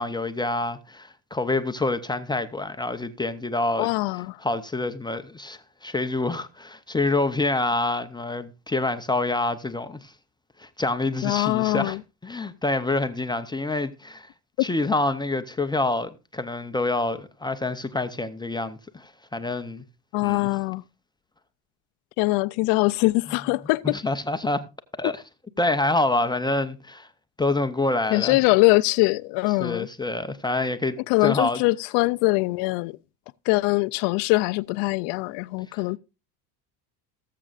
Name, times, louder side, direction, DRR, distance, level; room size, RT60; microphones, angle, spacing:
voice 1, 0.0-3.9 4.4-10.1 10.6-12.0 12.2-14.3 14.6-19.8 20.2-20.5 23.8-24.7 25.0-25.2 25.6-27.1 27.4-28.4 29.6-31.6, left 2 dB, 10° left, 0.6 m, -27 dB
voice 2, 3.8-4.4 11.2-12.0 14.6-14.7 20.1-20.8 22.2-24.0 28.1-29.9 31.1-33.0 33.5-36.0, left 23 dB, 75° left, 0.5 m, -22 dB
19.0 x 7.6 x 2.4 m
cardioid pair, 120°, 42 cm